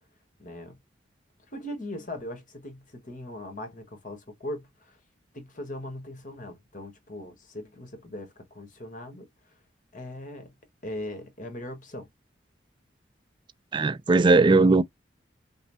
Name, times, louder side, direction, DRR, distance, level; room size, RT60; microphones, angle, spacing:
voice 1, 0.4-0.8 1.5-5.0 5.3-9.3 9.9-10.5 10.8-12.1, left 1 dB, 45° left, 1.3 m, -39 dB
voice 2, 13.7-14.8, right 3 dB, 25° right, 0.4 m, -18 dB
5.4 x 2.0 x 2.7 m
head